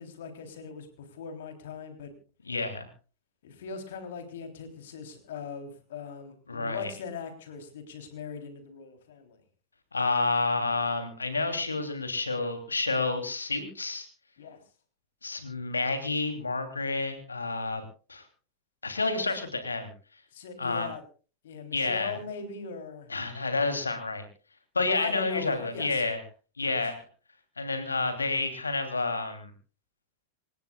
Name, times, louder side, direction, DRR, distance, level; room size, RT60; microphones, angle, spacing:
voice 1, 0.0-2.1 3.4-9.4 14.4-14.6 20.3-21.0 21.4-23.1 25.0-26.0 26.6-26.8, left 6 dB, 60° left, 6 dB, 3.5 m, -40 dB
voice 2, 2.4-2.9 6.5-6.9 9.9-14.1 15.2-17.8 18.1-18.2 18.8-19.9 20.6-20.9 21.7-22.1 23.1-24.3 24.7-26.2 26.6-27.0 27.6-29.5, left 3 dB, 80° left, 7 dB, 3.1 m, -29 dB
27.5 x 16.5 x 2.4 m, 0.36 s
figure-of-eight pair, 90°, 0 cm